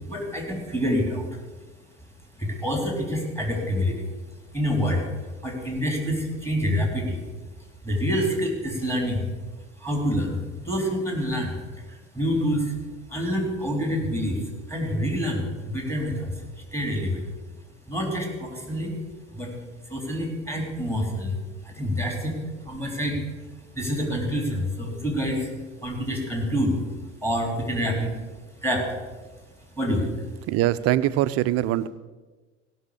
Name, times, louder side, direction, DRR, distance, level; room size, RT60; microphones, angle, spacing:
voice 1, 0.1-1.3 2.4-4.1 4.5-5.1 5.4-7.2 7.8-9.3 9.8-12.7 13.1-16.4 16.7-17.2 17.9-18.9 19.3-19.5 19.9-21.4 21.6-22.4 22.7-23.2 23.8-25.5 25.8-26.8 27.2-28.1 28.6-29.1 29.8-30.2, equal, 5° left, 1 dB, 3.8 m, -27 dB
voice 2, 30.5-31.9, right 14 dB, 40° right, 14 dB, 0.6 m, -22 dB
16.5 x 6.2 x 6.8 m, 1.3 s
hypercardioid pair, 75°, 36 cm